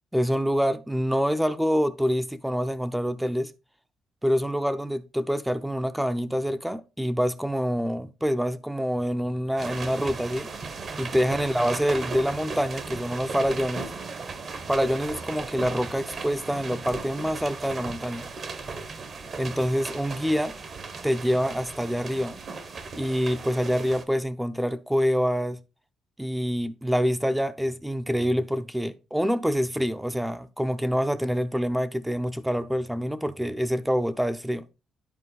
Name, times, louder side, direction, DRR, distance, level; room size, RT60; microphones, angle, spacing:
voice 1, 0.1-3.5 4.2-10.5 11.0-13.9 14.7-18.3 19.4-20.5 21.0-22.4 23.0-25.6 26.2-34.6, equal, 5° right, 0.7 m, -26 dB
sound 1, 9.6-24.0, right 4 dB, 50° right, 1.2 m, -37 dB
10.0 x 4.4 x 4.0 m
cardioid pair, 90°, 0 cm